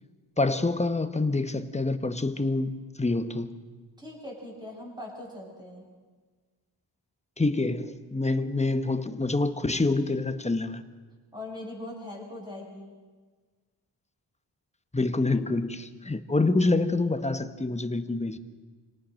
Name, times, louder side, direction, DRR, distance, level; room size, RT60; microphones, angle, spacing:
voice 1, 0.4-3.5 7.4-10.8 14.9-18.4, left 2 dB, 15° left, 1.2 m, -26 dB
voice 2, 4.0-5.8 11.3-12.9, left 1 dB, 10° right, 7.7 m, -41 dB
26.5 x 18.0 x 6.5 m
wide cardioid pair, 95°, 42 cm